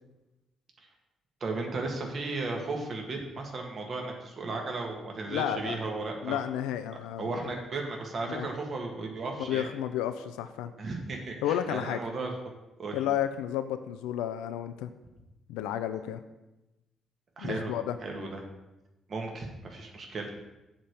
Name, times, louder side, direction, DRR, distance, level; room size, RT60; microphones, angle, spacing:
voice 1, 1.4-6.4 7.2-9.7 10.8-12.3 12.8-13.1 17.4-17.7 18.0-18.4 19.1-20.4, right 3 dB, 45° right, 1 dB, 1.7 m, -35 dB
voice 2, 5.3-5.8 6.2-7.4 8.3-8.5 9.4-10.7 11.4-12.0 12.9-14.9 15.5-16.2 17.4-18.0, left 10 dB, 70° left, 11 dB, 0.4 m, -32 dB
7.2 x 5.0 x 6.9 m, 1.0 s
figure-of-eight pair, 40°, 0 cm